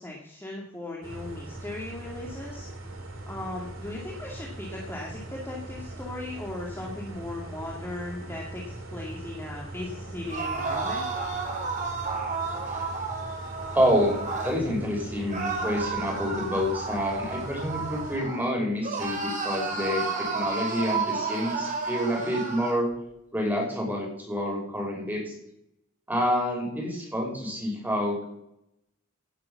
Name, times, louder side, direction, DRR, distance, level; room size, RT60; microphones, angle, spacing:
voice 1, 0.0-2.7 3.3-11.1, left 2 dB, 10° left, -3 dB, 2.3 m, -37 dB
sound 1, 1.0-18.2, right 2 dB, 75° right, 3.6 m, -41 dB
sound 2, 10.2-14.6 15.3-18.5 18.8-22.8, right 4 dB, 40° right, 3.8 m, -32 dB
voice 2, 13.7-14.2 14.4-22.9 23.3-25.3 26.1-28.3, equal, 10° right, -1 dB, 5.7 m, -28 dB
17.5 x 7.6 x 7.2 m, 0.80 s
head